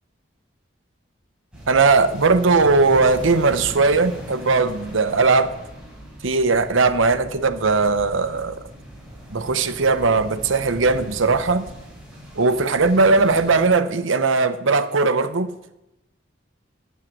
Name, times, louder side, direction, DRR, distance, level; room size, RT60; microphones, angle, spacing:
sound 1, 1.5-13.7, right 1 dB, 5° right, 3.9 m, -39 dB
voice 1, 1.7-5.6 6.2-8.6 9.3-11.7 12.4-15.5, right 3 dB, 75° right, 0.8 m, -19 dB
9.4 x 9.1 x 7.5 m
head